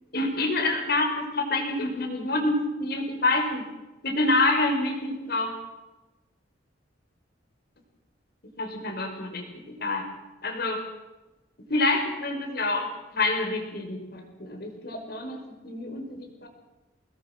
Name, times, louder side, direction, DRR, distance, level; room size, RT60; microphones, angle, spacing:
voice 1, 0.1-3.6 4.0-5.5 8.6-10.0 10.4-10.8 11.7-15.4 15.6-16.5, left 2 dB, 55° left, 3 dB, 5.4 m, -27 dB
26.5 x 20.0 x 6.1 m, 1.1 s
head